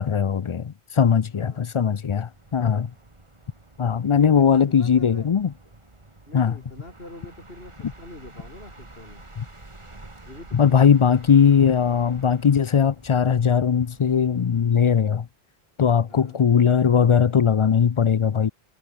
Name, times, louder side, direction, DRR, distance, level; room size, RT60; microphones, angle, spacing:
voice 1, 0.0-2.9 3.8-5.5 6.3-6.5 10.5-15.3 15.8-18.5, left 7 dB, 50° left, 0.4 m, -19 dB
voice 2, 1.3-1.7 4.0-5.3 6.3-9.2 10.2-10.9 16.1-16.4, left 1 dB, 65° left, 6.0 m, -44 dB
sound 1, 2.2-14.8, right 2 dB, 25° right, 2.1 m, -48 dB
omnidirectional pair, 1.1 m